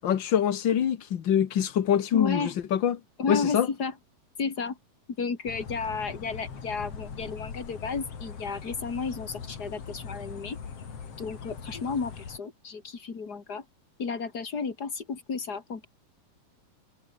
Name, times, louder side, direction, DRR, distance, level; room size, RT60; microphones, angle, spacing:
voice 1, 0.0-3.0 3.3-3.7, left 9 dB, 65° left, 1.1 m, -24 dB
voice 2, 2.1-2.6 3.2-3.9 4.4-4.8 5.2-10.6 11.2-13.6 14.0-15.9, left 5 dB, 30° left, 2.8 m, -32 dB
sound 1, 5.5-12.4, left 6 dB, 45° left, 3.7 m, -41 dB
omnidirectional pair, 4.0 m